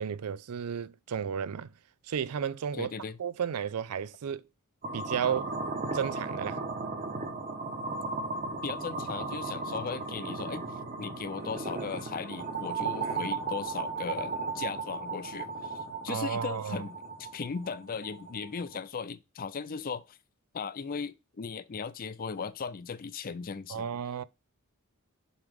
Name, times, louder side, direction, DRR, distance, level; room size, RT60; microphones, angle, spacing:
voice 1, 0.0-1.7 2.0-2.9 3.2-4.4 4.9-5.6 5.9-6.6 13.0-13.2 16.1-16.8 23.7-24.2, right 7 dB, 85° right, 0.4 m, -33 dB
voice 2, 2.7-3.2 8.6-10.7 11.0-20.2 20.5-23.9, left 5 dB, 40° left, 0.5 m, -37 dB
sound 1, 4.8-18.8, right 3 dB, 40° right, 1.3 m, -36 dB
7.1 x 3.2 x 5.1 m
head